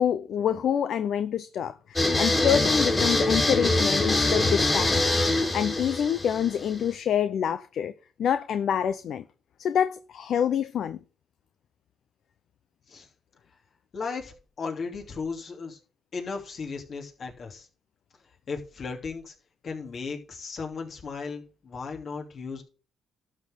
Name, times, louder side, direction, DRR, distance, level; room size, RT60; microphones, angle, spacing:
voice 1, 0.0-5.2 5.5-7.9 8.2-9.2 9.6-11.0, left 9 dB, 65° left, 0.6 m, -27 dB
sound 1, 2.0-6.9, left 2 dB, 20° left, 3.3 m, -24 dB
voice 2, 13.9-15.8 16.1-17.7 18.5-19.3 19.6-22.6, left 4 dB, 50° left, 2.8 m, -36 dB
12.0 x 4.3 x 7.8 m
cardioid pair, 90°, 0 cm